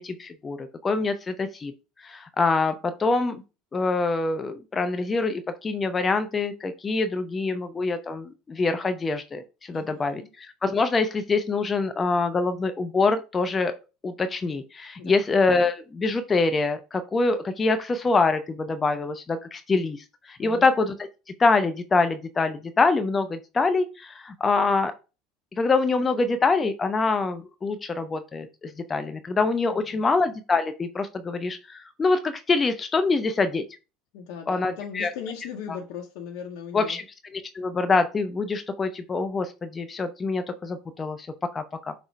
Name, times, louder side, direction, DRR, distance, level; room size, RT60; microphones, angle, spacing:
voice 1, 0.0-1.7 2.0-3.4 3.7-13.7 14.0-20.9 21.4-24.9 25.6-33.6 34.5-35.1 36.7-37.0 37.3-41.3 41.5-41.9, left 3 dB, 25° left, 9 dB, 0.5 m, -25 dB
voice 2, 9.7-10.3 15.0-15.2 20.4-20.7 29.7-30.0 34.1-37.0, left 7 dB, 60° left, 0 dB, 0.7 m, -38 dB
5.4 x 2.0 x 4.4 m, 0.30 s
figure-of-eight pair, 70°, 0 cm